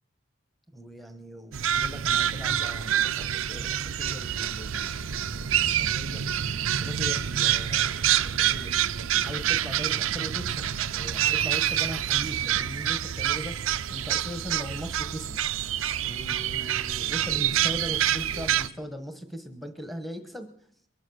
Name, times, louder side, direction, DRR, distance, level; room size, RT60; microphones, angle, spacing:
voice 1, 0.7-6.2 6.8-7.9 8.2-8.7 9.2-13.6 13.9-15.4 16.0-20.5, equal, ahead, 6 dB, 1.2 m, -39 dB
sound 1, 1.5-18.7, right 10 dB, 80° right, 0.6 m, -27 dB
22.5 x 9.4 x 6.4 m, 0.68 s
head